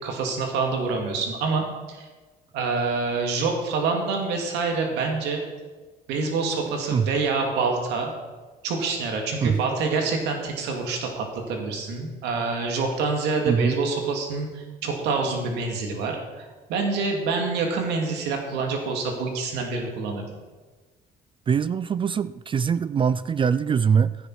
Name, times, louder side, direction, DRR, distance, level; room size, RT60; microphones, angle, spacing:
voice 1, 0.0-2.1 2.5-5.4 6.1-8.1 8.6-20.3, right 4 dB, 85° right, 2 dB, 2.5 m, -26 dB
voice 2, 13.4-13.8 21.5-24.2, right 6 dB, 30° right, 16 dB, 0.4 m, -22 dB
14.5 x 10.0 x 4.8 m, 1.3 s
cardioid pair, 110°, 17 cm